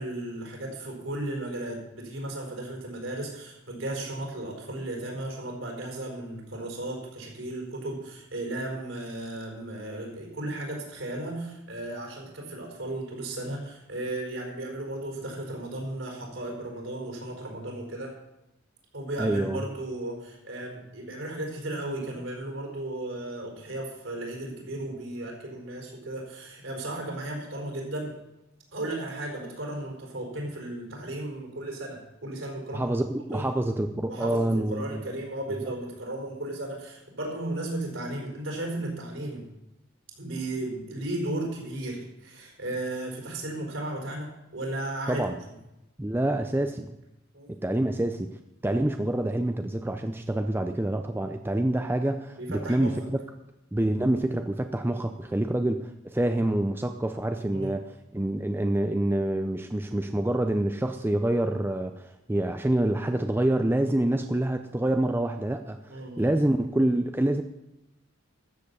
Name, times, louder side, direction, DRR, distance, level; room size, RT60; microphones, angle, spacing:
voice 1, 0.0-18.2 18.9-28.1 28.7-33.0 33.3-33.5 34.1-39.5 40.2-45.6 47.3-47.5 52.4-53.0 57.5-57.7 65.9-66.3, right 1 dB, 65° right, 0 dB, 4.6 m, -35 dB
voice 2, 19.2-19.6 32.7-35.0 45.1-45.4 46.0-46.9 47.5-53.2 53.7-67.4, right 1 dB, 10° right, 7 dB, 0.5 m, -27 dB
13.0 x 7.8 x 6.9 m, 0.92 s
head